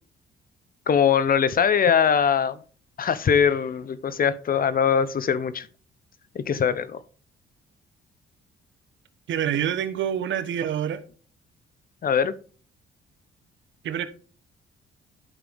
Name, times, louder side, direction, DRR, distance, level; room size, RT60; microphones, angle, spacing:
voice 1, 0.9-2.6 3.0-5.7 6.3-7.0 12.0-12.3, left 7 dB, 45° left, 0.8 m, -21 dB
voice 2, 9.3-11.0 13.8-14.1, right 9 dB, 70° right, 1.1 m, -26 dB
11.5 x 5.9 x 3.5 m
cardioid pair, 90°, 20 cm